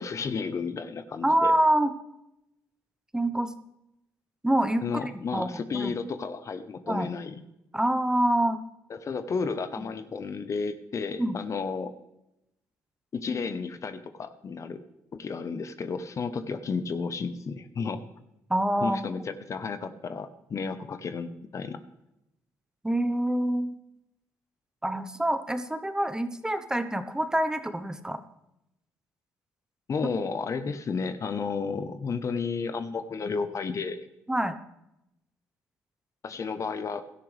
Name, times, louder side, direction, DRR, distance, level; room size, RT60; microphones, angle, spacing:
voice 1, 0.0-1.5 4.8-7.3 8.9-11.9 13.1-14.8 15.1-18.0 18.8-21.8 29.9-34.1 36.2-37.0, left 5 dB, 45° left, 11 dB, 1.0 m, -32 dB
voice 2, 1.2-1.9 3.1-3.5 4.4-5.9 6.9-7.1 7.7-8.6 11.2-11.4 18.5-19.0 22.8-23.7 24.8-28.2 34.3-34.6, right 1 dB, 10° right, 10 dB, 1.1 m, -26 dB
16.5 x 12.5 x 3.4 m, 0.86 s
supercardioid pair, 75°, 7 cm